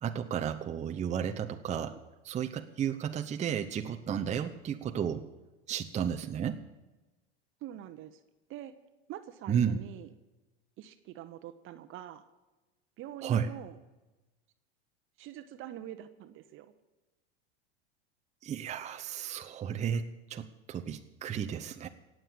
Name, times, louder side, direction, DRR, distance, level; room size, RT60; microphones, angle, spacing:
voice 1, 0.0-2.0 2.2-5.3 5.7-6.6 9.5-9.8 13.2-13.5 18.4-21.9, right 8 dB, 20° right, 6 dB, 0.8 m, -33 dB
voice 2, 7.6-8.2 8.5-8.7 9.1-10.1 10.8-12.2 13.0-13.8 15.2-16.7, right 11 dB, 40° right, 11 dB, 1.1 m, -45 dB
17.5 x 7.8 x 8.7 m, 1.1 s
hypercardioid pair, 110°, 31 cm